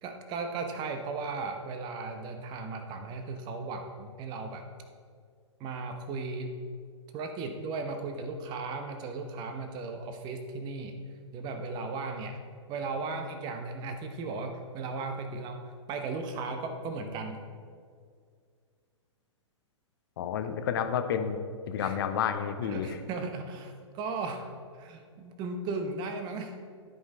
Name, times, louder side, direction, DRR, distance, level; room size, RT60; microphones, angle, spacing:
voice 1, 0.0-4.7 5.6-6.5 7.1-10.9 11.3-12.4 12.7-17.4 21.8-22.0 22.6-24.5 24.8-26.6, right 3 dB, 25° right, 6 dB, 1.0 m, -36 dB
voice 2, 20.2-21.4 21.7-23.0, left 8 dB, 45° left, 8 dB, 0.7 m, -30 dB
13.0 x 5.5 x 3.6 m, 2.1 s
figure-of-eight pair, 110°, 16 cm